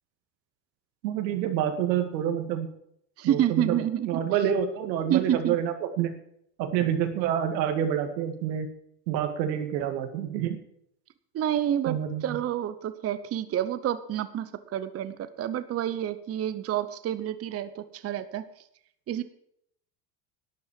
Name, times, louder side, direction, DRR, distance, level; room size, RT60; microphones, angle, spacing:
voice 1, 1.0-2.7 3.2-3.8 4.1-6.1 6.6-8.7 9.1-10.6 11.9-12.4, right 9 dB, 90° right, 6 dB, 2.2 m, -27 dB
voice 2, 3.2-4.1 5.1-5.6 11.3-18.4 19.1-19.2, right 11 dB, 30° right, 12 dB, 0.7 m, -28 dB
12.0 x 8.5 x 7.4 m, 0.72 s
supercardioid pair, 115°, 50 cm